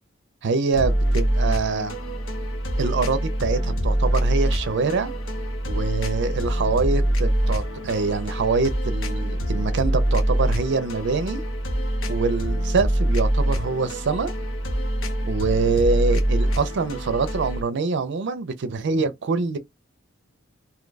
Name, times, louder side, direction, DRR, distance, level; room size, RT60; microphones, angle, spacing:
voice 1, 0.4-2.0 2.8-5.1 5.7-11.4 12.1-14.3 15.2-19.6, right 4 dB, 60° right, 0.5 m, -25 dB
sound 1, 0.7-17.6, right 1 dB, 80° left, 0.9 m, -24 dB
2.8 x 2.2 x 3.9 m
head